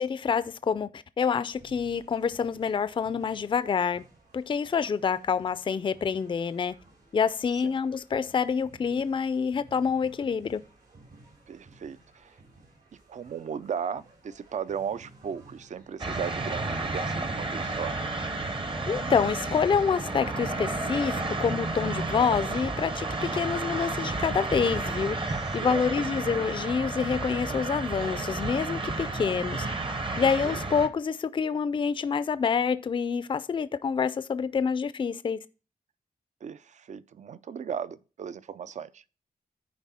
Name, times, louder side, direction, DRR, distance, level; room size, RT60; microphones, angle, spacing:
voice 1, 0.0-4.0 4.3-6.7 7.1-10.6 18.9-25.2 25.5-29.7 30.2-35.4, left 6 dB, 35° left, 0.4 m, -27 dB
sound 1, 1.5-18.1, right 2 dB, 70° right, 3.2 m, -56 dB
voice 2, 11.5-12.3 13.1-18.0 25.3-25.9 30.4-30.6 36.4-39.0, right 7 dB, 50° right, 0.4 m, -36 dB
sound 2, 16.0-30.9, right 2 dB, 35° right, 0.9 m, -32 dB
10.5 x 4.7 x 4.2 m
wide cardioid pair, 150°, 15 cm